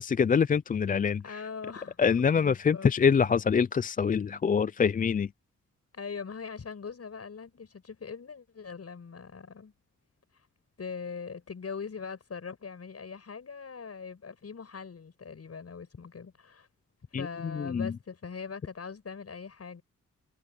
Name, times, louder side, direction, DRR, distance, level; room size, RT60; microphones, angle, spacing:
voice 1, 0.0-1.2 2.0-5.3 17.1-17.9, left 6 dB, 25° left, 0.4 m, -25 dB
voice 2, 1.2-2.9 5.9-9.7 10.8-16.7 17.2-19.8, left 5 dB, 50° left, 7.8 m, -41 dB
cardioid pair, 90°, 32 cm